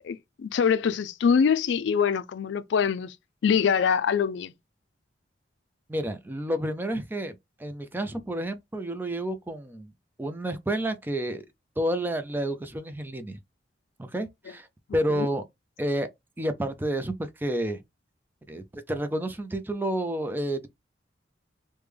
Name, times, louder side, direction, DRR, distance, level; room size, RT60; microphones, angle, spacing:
voice 1, 0.0-3.1 3.4-4.5 15.1-15.3, left 6 dB, 75° left, 0.3 m, -24 dB
voice 2, 5.9-9.9 10.2-11.4 11.8-13.4 14.0-14.7 14.9-15.4 15.8-16.1 16.4-17.8 18.5-20.7, right 1 dB, 10° right, 0.3 m, -30 dB
3.2 x 2.1 x 3.4 m
head